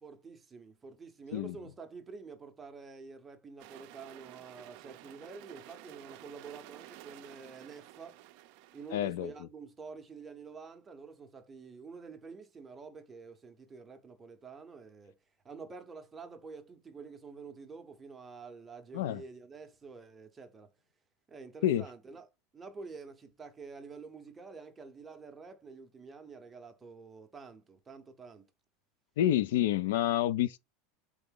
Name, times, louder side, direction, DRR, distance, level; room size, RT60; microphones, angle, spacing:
voice 1, 0.0-8.2 8.7-15.2 15.4-20.7 21.3-22.3 22.5-28.5, right 4 dB, 15° right, 0.6 m, -48 dB
sound 1, 3.6-9.0, right 15 dB, 50° right, 0.4 m, -52 dB
voice 2, 8.9-9.3 18.9-19.2 21.6-21.9 29.2-30.6, left 12 dB, 80° left, 0.3 m, -28 dB
3.9 x 3.5 x 3.6 m
supercardioid pair, 160°, 0 cm